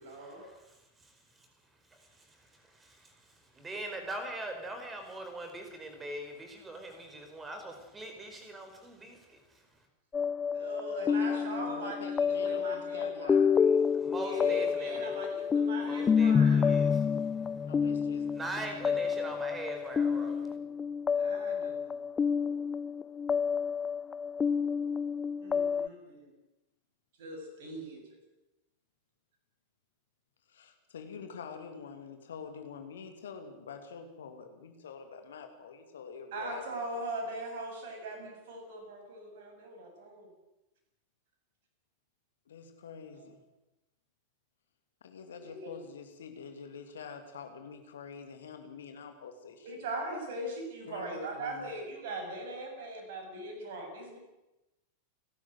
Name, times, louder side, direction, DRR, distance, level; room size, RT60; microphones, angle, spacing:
voice 1, 0.0-0.4 10.5-12.0 12.4-13.4 14.1-17.0 21.1-22.0 25.4-26.3 27.2-28.0 36.3-40.3 43.2-43.3 45.3-45.7 49.6-54.2, right 1 dB, 55° right, 2 dB, 7.8 m, -40 dB
voice 2, 1.0-1.5 1.8-9.9 13.9-15.2 15.8-17.2 18.3-20.6, right 1 dB, 15° right, 6 dB, 4.8 m, -42 dB
sound 1, 10.1-25.9, left 6 dB, 20° left, 0.6 m, -29 dB
voice 3, 11.1-13.8 17.7-18.3 18.6-19.0 19.3-19.4 30.5-36.8 42.5-43.4 45.0-49.8 50.9-51.7, left 6 dB, 65° left, 6 dB, 2.8 m, -46 dB
30.0 x 13.0 x 7.8 m, 0.97 s
figure-of-eight pair, 90°, 0 cm